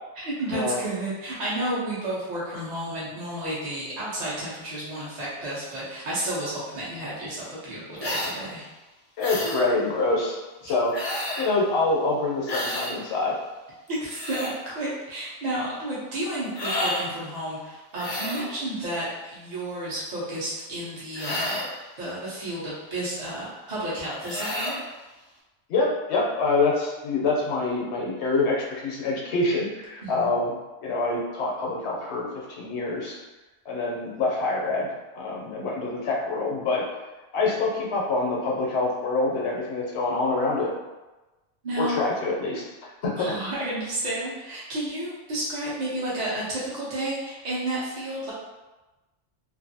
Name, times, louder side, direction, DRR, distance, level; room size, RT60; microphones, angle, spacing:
voice 1, 0.2-8.6 10.6-10.7 13.9-14.5 14.7-21.6 22.0-24.8 30.0-30.3 41.6-41.9 43.2-48.3, right 1 dB, 40° right, -8 dB, 0.8 m, -31 dB
sound 1, 8.0-8.4 9.2-9.6 10.9-11.5 12.5-12.9 13.9-14.5 16.5-17.1 17.9-18.5 21.1-21.8 24.2-24.8, left 1 dB, 45° left, 0.5 m, -30 dB
voice 2, 9.2-10.9 11.4-13.4 25.7-33.2 33.7-36.8 37.3-40.7 41.8-43.4, left 3 dB, 70° left, -3 dB, 0.9 m, -26 dB
2.5 x 2.5 x 2.6 m, 1.1 s
omnidirectional pair, 1.2 m